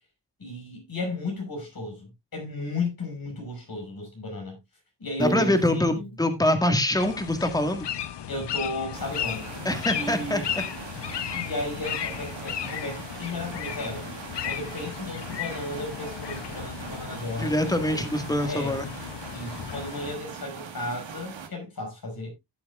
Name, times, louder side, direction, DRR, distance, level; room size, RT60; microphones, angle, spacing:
voice 1, 0.4-4.6 5.0-6.1 8.3-10.5 11.3-14.1 14.5-18.1 18.4-18.8 19.3-22.3, left 2 dB, 50° left, 6.0 m, -34 dB
voice 2, 5.2-7.9 9.6-10.4 17.4-18.9, left 1 dB, 10° left, 1.8 m, -24 dB
Piano, 5.2-7.4, right 3 dB, 10° right, 0.6 m, -35 dB
sound 1, 7.0-20.2, left 10 dB, 65° left, 0.8 m, -35 dB
sound 2, 8.9-21.5, right 6 dB, 90° right, 1.9 m, -41 dB
16.0 x 7.8 x 2.4 m
wide cardioid pair, 95°, 44 cm